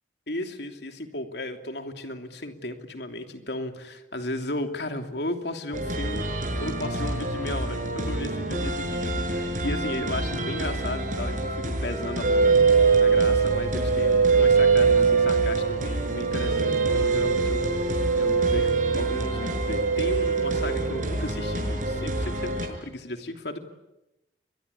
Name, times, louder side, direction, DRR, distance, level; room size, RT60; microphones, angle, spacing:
voice 1, 0.3-23.6, left 1 dB, 65° left, 5 dB, 3.0 m, -35 dB
sound 1, 5.7-22.7, right 1 dB, 45° right, 6.4 m, -29 dB
sound 2, 12.2-20.7, right 5 dB, 60° right, 3.8 m, -22 dB
29.5 x 23.5 x 8.4 m, 0.94 s
head